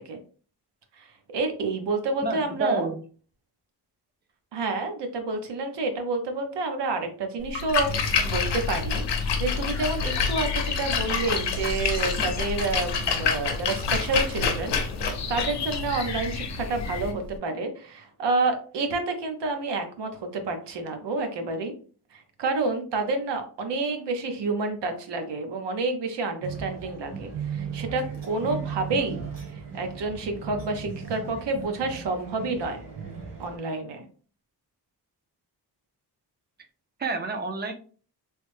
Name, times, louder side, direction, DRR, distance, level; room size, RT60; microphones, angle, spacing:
voice 1, 1.3-2.9 4.5-14.8 15.3-21.7 22.1-29.2 29.7-32.8 33.4-34.0, right 3 dB, 85° right, 5 dB, 0.8 m, -29 dB
voice 2, 2.2-2.9 37.0-37.7, right 3 dB, 25° right, 6 dB, 0.4 m, -28 dB
Splash splatter, 7.4-17.4, left 5 dB, 85° left, 0.7 m, -28 dB
sound 1, 7.8-17.1, left 4 dB, 45° left, 0.5 m, -32 dB
sound 2, 26.4-33.6, right 6 dB, 55° right, 1.1 m, -36 dB
3.2 x 2.1 x 3.2 m, 0.41 s
wide cardioid pair, 165°, 41 cm